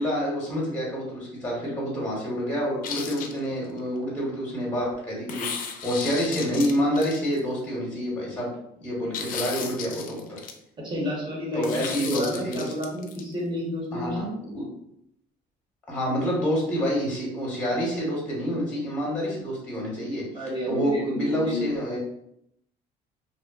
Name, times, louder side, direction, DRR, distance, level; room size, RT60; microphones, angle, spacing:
voice 1, 0.0-8.5 8.8-10.4 11.5-12.5 13.9-14.7 15.9-22.0, equal, 5° left, -4 dB, 0.9 m, -28 dB
sound 1, 2.8-3.8 5.3-7.6 9.1-10.5 11.6-13.2, left 6 dB, 55° left, 0.4 m, -35 dB
voice 2, 10.8-14.4 20.3-21.6, equal, 25° right, -3 dB, 1.0 m, -30 dB
2.5 x 2.2 x 2.3 m, 0.73 s
cardioid pair, 110°, 17 cm